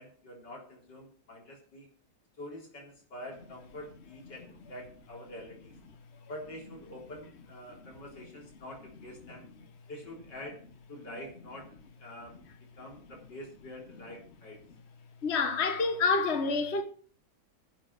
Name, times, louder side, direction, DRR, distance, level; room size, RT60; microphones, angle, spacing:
voice 1, 0.0-1.9 2.4-5.8 6.3-9.5 9.9-12.4 12.7-14.6, left 1 dB, 60° left, 4.5 m, -46 dB
voice 2, 15.2-16.8, left 4 dB, 40° left, 1.3 m, -27 dB
11.0 x 7.6 x 6.3 m
omnidirectional pair, 2.2 m